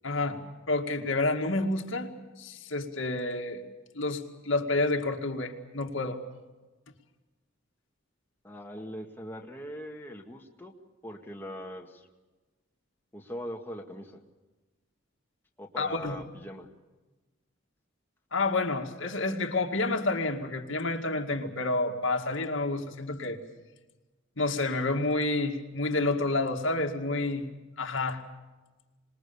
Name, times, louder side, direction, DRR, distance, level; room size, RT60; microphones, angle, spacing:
voice 1, 0.0-0.4 0.7-2.1 2.4-3.6 3.9-6.2 15.8-16.2 18.3-23.4 24.4-27.5 27.8-28.2, left 2 dB, 70° left, 4 dB, 2.2 m, -29 dB
voice 2, 8.4-10.7 11.0-12.1 13.1-14.2 15.6-16.7, equal, 10° left, 1 dB, 1.8 m, -41 dB
26.0 x 21.0 x 7.1 m, 1.2 s
head